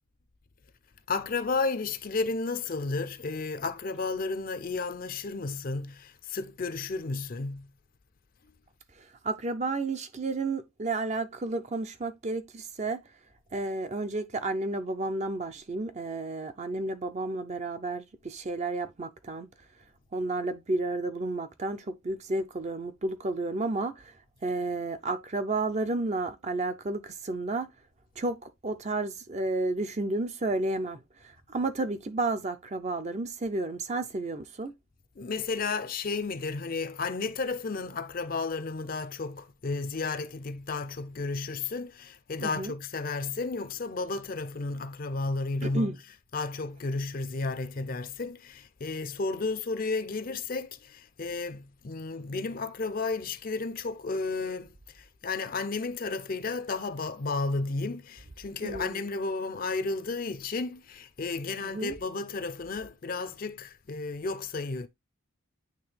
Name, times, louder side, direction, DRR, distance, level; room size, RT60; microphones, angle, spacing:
voice 1, 1.1-7.7 35.2-64.9, left 3 dB, 40° left, 0.5 m, -33 dB
voice 2, 9.0-13.0 13.5-19.5 20.1-24.2 24.4-27.7 28.2-34.7 42.4-42.7 45.6-46.0 58.6-59.0 61.6-62.0, right 2 dB, 30° right, 0.5 m, -32 dB
9.0 x 3.2 x 3.2 m
head